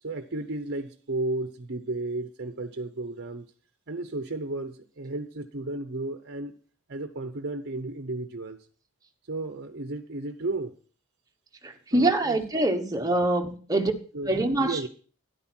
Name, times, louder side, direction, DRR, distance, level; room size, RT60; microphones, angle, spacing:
voice 1, 0.0-3.5 3.9-6.6 6.9-8.7 9.3-10.7 11.9-12.4 14.1-14.9, right 2 dB, 50° right, 0.8 m, -33 dB
voice 2, 11.6-13.9 14.3-14.9, right 2 dB, 15° right, 1.2 m, -25 dB
12.5 x 10.5 x 4.4 m
head